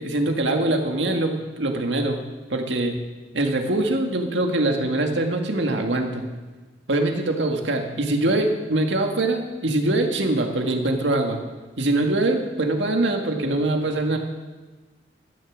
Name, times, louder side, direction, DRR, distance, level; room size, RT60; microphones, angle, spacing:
voice 1, 0.0-2.2 2.5-3.0 3.3-6.3 6.9-11.4 11.8-14.2, right 2 dB, 85° right, 3 dB, 2.0 m, -23 dB
13.5 x 9.7 x 7.3 m, 1.3 s
head